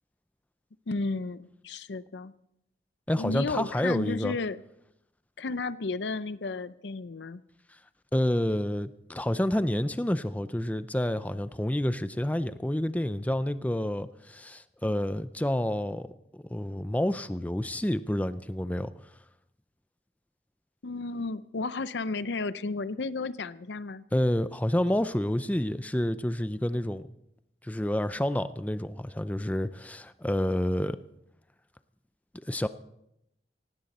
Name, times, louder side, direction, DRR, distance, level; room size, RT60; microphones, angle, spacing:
voice 1, 0.9-2.3 3.2-4.6 5.4-7.4 20.8-24.0, left 3 dB, 85° left, 15 dB, 0.6 m, -33 dB
voice 2, 3.1-4.4 8.1-16.1 16.3-18.9 24.1-27.1 27.6-31.0 32.5-32.7, left 1 dB, 10° left, 12 dB, 0.5 m, -29 dB
18.0 x 17.0 x 4.2 m, 0.82 s
head